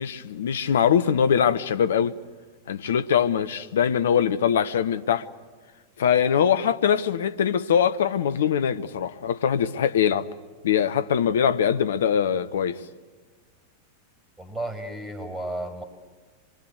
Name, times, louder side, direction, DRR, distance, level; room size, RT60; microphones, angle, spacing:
voice 1, 0.0-2.1 2.7-5.3 6.0-10.3 10.6-12.8, left 8 dB, 60° left, 1.0 m, -22 dB
voice 2, 14.4-15.8, right 1 dB, 10° right, 5.2 m, -33 dB
25.5 x 23.5 x 8.2 m
figure-of-eight pair, 90°, 0 cm